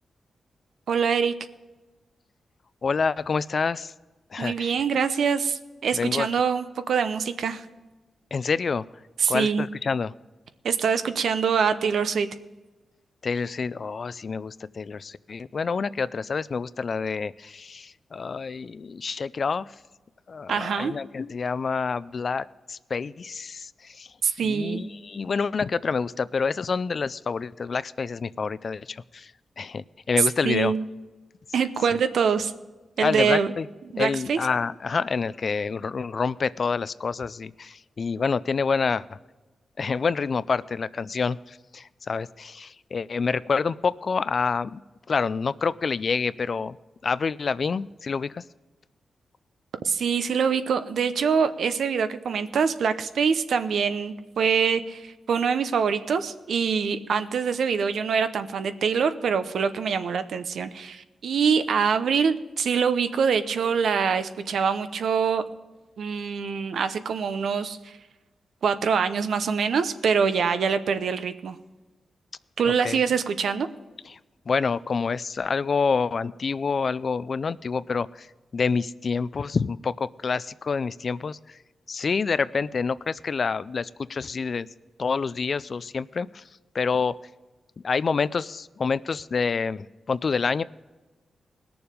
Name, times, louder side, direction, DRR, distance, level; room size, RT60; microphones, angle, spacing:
voice 1, 0.9-1.3 4.4-7.6 9.2-9.7 10.6-12.3 20.5-20.9 24.2-24.8 30.4-30.8 31.5-32.5 33.0-33.5 33.9-34.4 49.8-65.4 66.0-67.8 68.6-71.6 72.6-73.7, right 6 dB, 80° right, 11 dB, 0.7 m, -24 dB
voice 2, 2.8-3.9 4.3-4.7 5.9-6.3 8.3-8.8 9.3-10.1 13.2-19.7 20.3-24.1 24.4-29.3 29.6-30.7 33.0-33.7 34.0-39.0 39.8-44.8 45.1-46.8 47.0-48.4 72.7-73.0 74.1-74.2 74.5-78.3 78.5-81.6 81.9-84.7 85.0-86.4 86.7-87.2 87.8-90.6, left 5 dB, 50° left, 17 dB, 0.3 m, -27 dB
19.5 x 7.0 x 5.1 m, 1.2 s
wide cardioid pair, 105°, 0 cm